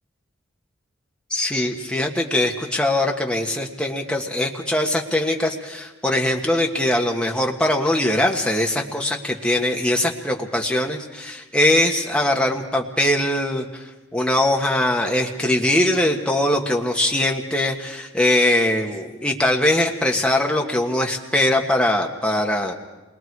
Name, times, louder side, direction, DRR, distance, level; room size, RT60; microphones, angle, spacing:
voice 1, 1.3-22.7, left 1 dB, 5° left, 1 dB, 1.4 m, -21 dB
28.0 x 22.0 x 4.7 m, 1.2 s
head